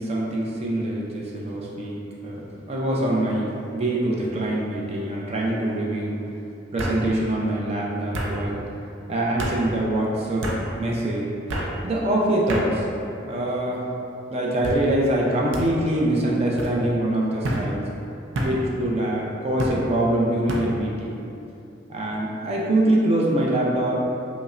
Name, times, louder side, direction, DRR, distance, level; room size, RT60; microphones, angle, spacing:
voice 1, 0.0-2.0 2.2-6.2 6.7-8.6 9.1-10.5 10.8-11.3 11.8-12.9 13.2-13.8 14.3-17.8 18.4-21.2 21.9-23.9, right 1 dB, 35° right, -4 dB, 0.5 m, -24 dB
sound 1, 3.3-3.7 4.1-4.6 5.7-5.8 6.8-7.0 8.1-8.3 9.4-9.6 10.4-10.6 11.5-11.7 12.5-12.7 13.4-13.8 14.6-14.8 15.5-15.7 16.6-16.7 17.4-17.7 18.3-18.6 19.6-19.8 20.5-20.7, right 1 dB, 90° right, 0.5 m, -29 dB
5.1 x 2.1 x 2.5 m, 2.7 s
head